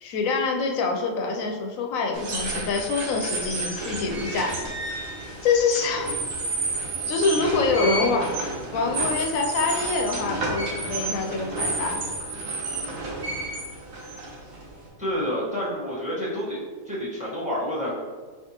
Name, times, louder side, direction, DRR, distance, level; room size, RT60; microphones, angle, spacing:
voice 1, 0.0-4.5 5.4-6.1 7.1-8.2 8.7-12.0, left 4 dB, 80° left, 2 dB, 1.0 m, -25 dB
sound 1, 2.1-14.9, right 2 dB, 75° right, 1.2 m, -31 dB
voice 2, 7.7-8.6 15.0-18.0, equal, 5° right, -7 dB, 1.1 m, -29 dB
4.9 x 3.4 x 2.9 m, 1.5 s
omnidirectional pair, 1.4 m